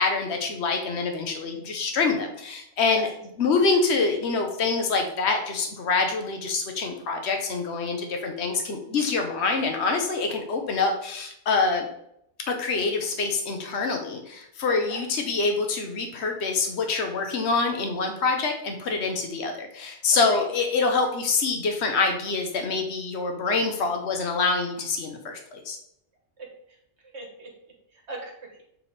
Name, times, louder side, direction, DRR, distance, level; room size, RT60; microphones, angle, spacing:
voice 1, 0.0-3.1 3.4-11.9 12.5-25.8, left 4 dB, 70° left, 4 dB, 1.2 m, -25 dB
voice 2, 14.6-15.0 20.3-20.4 26.7-26.8 27.0-27.5 27.9-28.6, right 2 dB, 70° right, 0 dB, 1.6 m, -40 dB
7.2 x 3.5 x 4.2 m, 0.74 s
omnidirectional pair, 1.2 m